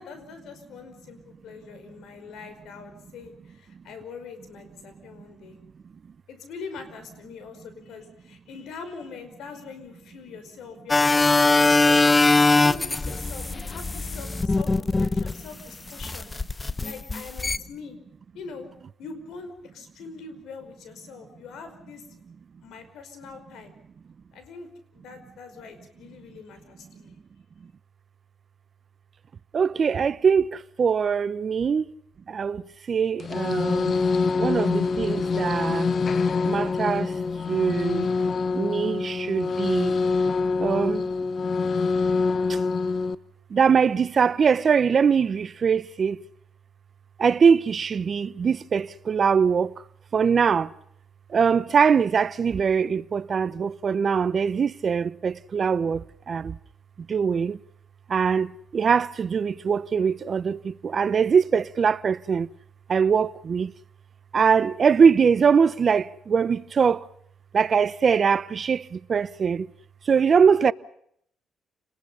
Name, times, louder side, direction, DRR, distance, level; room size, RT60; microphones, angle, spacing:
voice 1, 0.0-5.6 6.3-12.0 12.4-16.3 16.8-18.0 18.3-18.7 19.0-22.2 22.6-23.7 24.3-27.2, left 5 dB, 80° left, 5.3 m, -43 dB
sound 1, 10.9-15.5 16.0-17.6, left 3 dB, 20° left, 0.8 m, -21 dB
voice 2, 29.5-30.5 30.8-31.8 32.3-32.6 32.9-33.9 34.4-35.9 36.4-37.1 37.5-38.1 38.5-40.0 40.6-41.0 43.5-46.2 47.2-49.7 50.1-50.7 51.3-56.0 56.3-56.5 57.1-57.6 58.1-62.5 62.9-63.7 64.3-67.0 67.5-68.8 69.1-69.7 70.1-70.7, right 6 dB, 45° right, 0.9 m, -22 dB
sound 2, 33.2-43.1, left 4 dB, 45° left, 0.9 m, -25 dB
29.5 x 21.0 x 5.6 m
cardioid pair, 90°, 0 cm